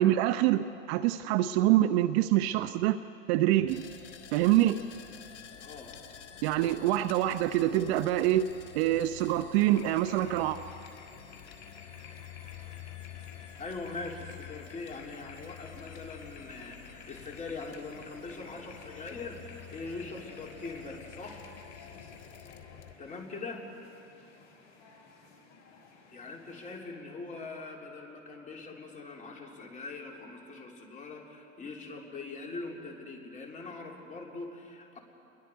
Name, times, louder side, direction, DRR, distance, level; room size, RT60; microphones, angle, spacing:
voice 1, 0.0-3.0 3.3-3.8 4.3-4.8 6.4-8.4 8.7-10.6, right 14 dB, 55° right, 12 dB, 0.7 m, -25 dB
sound 1, 3.7-22.9, left 9 dB, 65° left, 2.4 m, -49 dB
voice 2, 5.6-5.9 13.6-21.4 23.0-23.6 26.1-35.0, left 3 dB, 20° left, 0 dB, 3.4 m, -42 dB
sound 2, 9.6-26.8, left 4 dB, 45° left, 6.0 m, -53 dB
28.5 x 22.0 x 4.6 m, 2.7 s
hypercardioid pair, 115°, 39 cm